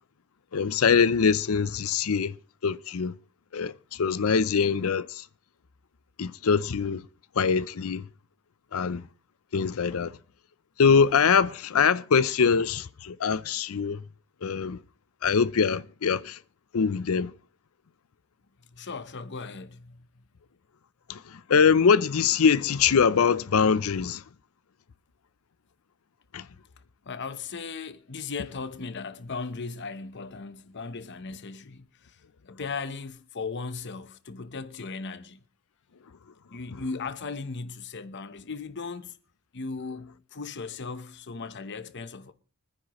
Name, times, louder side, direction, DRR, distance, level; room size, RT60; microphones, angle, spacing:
voice 1, 0.5-2.3 2.6-3.1 3.5-5.2 6.2-7.0 7.4-8.1 8.7-9.0 9.5-10.1 10.8-14.0 14.4-14.8 15.2-16.4 16.7-17.3 21.1-21.2 21.5-24.2 26.3-26.4, left 6 dB, 80° left, 0.5 m, -23 dB
voice 2, 18.7-20.2 27.1-32.2 32.5-35.4 36.5-39.2 39.5-42.3, left 4 dB, 55° left, 0.9 m, -37 dB
25.0 x 9.9 x 3.1 m
head